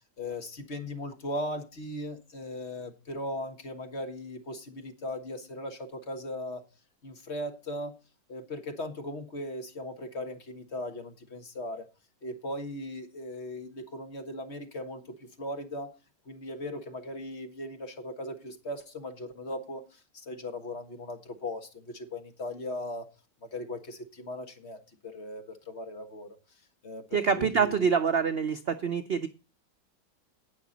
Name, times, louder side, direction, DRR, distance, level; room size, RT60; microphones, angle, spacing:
voice 1, 0.2-6.6 7.0-7.9 8.3-11.9 12.2-16.0 16.3-23.1 23.4-26.3 26.8-27.9, left 1 dB, 40° left, 1.7 m, -38 dB
voice 2, 27.1-29.3, right 6 dB, 70° right, 0.5 m, -26 dB
18.0 x 6.0 x 4.0 m
omnidirectional pair, 2.0 m